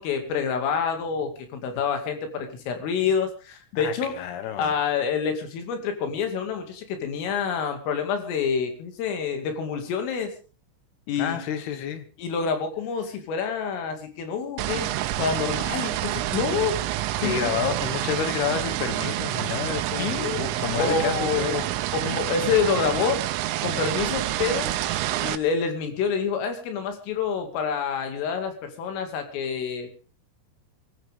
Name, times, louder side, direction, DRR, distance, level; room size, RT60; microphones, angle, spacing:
voice 1, 0.0-4.1 4.6-10.3 11.1-11.4 12.2-14.9 15.2-16.8 17.2-17.7 20.0-20.4 20.8-21.7 21.9-23.2 23.6-24.7 25.1-29.9, left 6 dB, 85° left, 5.1 m, -27 dB
voice 2, 3.8-4.8 11.2-12.1 17.2-21.7, left 9 dB, 65° left, 2.8 m, -30 dB
sound 1, 14.6-25.4, right 14 dB, 85° right, 3.6 m, -28 dB
23.5 x 15.0 x 3.7 m
omnidirectional pair, 5.7 m